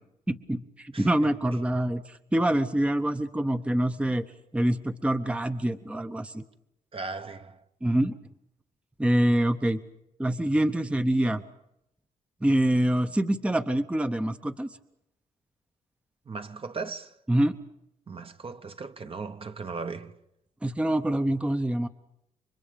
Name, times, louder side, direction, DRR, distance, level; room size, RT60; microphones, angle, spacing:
voice 1, 0.3-4.2 4.5-6.4 7.8-8.1 9.0-9.8 10.2-11.4 12.4-14.7 17.3-17.5 20.6-21.9, right 1 dB, 10° right, 0.8 m, -25 dB
voice 2, 0.9-1.3 6.9-7.6 16.3-17.1 18.1-20.1, right 4 dB, 35° right, 1.1 m, -37 dB
29.5 x 24.5 x 5.2 m
cardioid pair, 110°, 15 cm